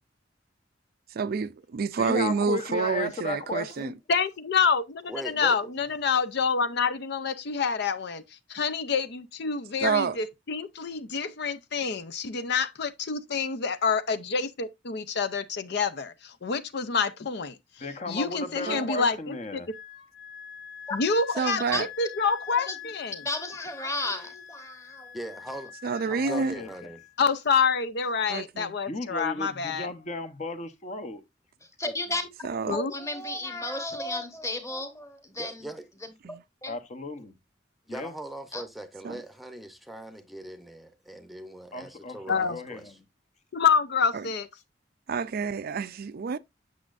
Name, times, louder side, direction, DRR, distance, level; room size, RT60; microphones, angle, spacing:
voice 1, 1.2-3.9 9.8-10.2 18.7-18.9 21.4-21.9 25.8-26.6 28.3-28.8 32.4-32.8 36.2-36.4 39.0-39.1 44.1-44.3 45.1-46.4, right 5 dB, 55° right, 0.4 m, -28 dB
voice 2, 2.0-3.9 17.8-19.7 26.1-26.7 28.9-31.2 31.8-31.9 36.7-37.3 37.9-38.1 41.7-42.9, left 3 dB, 40° left, 0.9 m, -35 dB
voice 3, 4.1-4.8 5.2-8.2 8.5-19.6 20.9-21.6 22.0-23.2 27.2-29.9 32.7-32.9 42.3-42.6 43.5-44.5, left 5 dB, 65° left, 0.6 m, -27 dB
voice 4, 5.1-5.7 25.1-25.7 26.0-27.0 35.4-35.9 37.9-43.0, right 1 dB, ahead, 0.7 m, -40 dB
Wind instrument woodwind instrument, 19.7-27.1, left 9 dB, 90° left, 1.2 m, -44 dB
voice 5, 21.3-21.8 22.7-25.2 31.6-35.7 36.0-36.1 36.6-36.8 38.5-38.6, left 2 dB, 15° left, 1.2 m, -34 dB
8.3 x 6.3 x 2.5 m
head